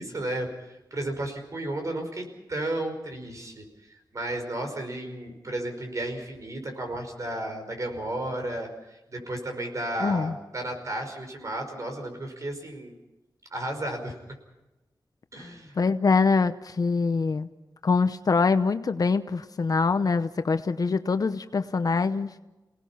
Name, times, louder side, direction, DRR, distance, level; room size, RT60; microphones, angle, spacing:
voice 1, 0.0-3.6 4.1-8.7 9.1-12.9 13.5-14.1 15.3-15.8, right 1 dB, 45° right, 4 dB, 5.3 m, -33 dB
voice 2, 10.0-10.3 15.8-17.5 17.8-22.3, left 4 dB, 50° left, 10 dB, 0.8 m, -24 dB
29.5 x 18.5 x 5.8 m, 1.0 s
wide cardioid pair, 110°, 8 cm